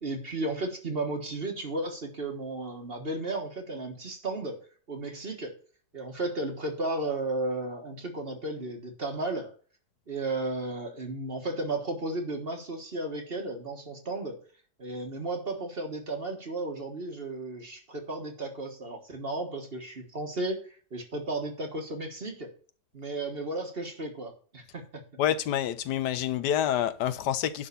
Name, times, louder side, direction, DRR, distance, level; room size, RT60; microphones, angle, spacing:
voice 1, 0.0-4.6 4.9-5.5 5.9-9.5 10.1-14.4 14.8-22.5 22.9-25.0, right 2 dB, 35° right, 1.6 m, -34 dB
voice 2, 25.2-27.7, left 10 dB, 80° left, 1.3 m, -27 dB
11.0 x 3.9 x 6.9 m
omnidirectional pair, 1.8 m